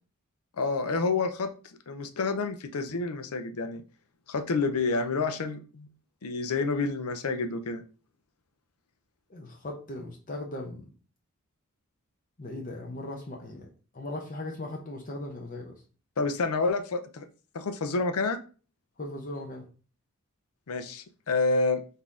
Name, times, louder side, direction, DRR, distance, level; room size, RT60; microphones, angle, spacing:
voice 1, 0.6-1.5 1.9-3.8 4.3-5.9 6.2-7.8 16.2-17.3 17.5-18.4 20.7-21.8, left 3 dB, 85° left, 8 dB, 0.6 m, -28 dB
voice 2, 9.3-10.8 12.4-13.7 13.9-15.7 19.0-19.6, left 1 dB, 40° left, 0 dB, 0.7 m, -38 dB
4.0 x 2.7 x 4.7 m, 0.37 s
head